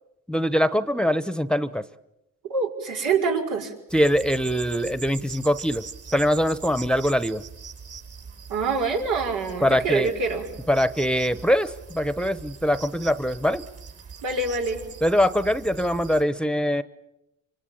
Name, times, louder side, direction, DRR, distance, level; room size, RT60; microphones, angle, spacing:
voice 1, 0.3-1.8 3.9-5.8 6.1-7.4 9.6-10.1 10.7-13.6 15.0-16.8, equal, 5° left, 13 dB, 1.1 m, -23 dB
voice 2, 2.5-3.7 8.5-10.5 14.2-14.8, right 4 dB, 85° right, 1 dB, 6.0 m, -25 dB
sound 1, 3.9-16.2, right 5 dB, 55° right, 5.7 m, -42 dB
26.0 x 25.5 x 8.8 m, 0.89 s
cardioid pair, 90°, 30 cm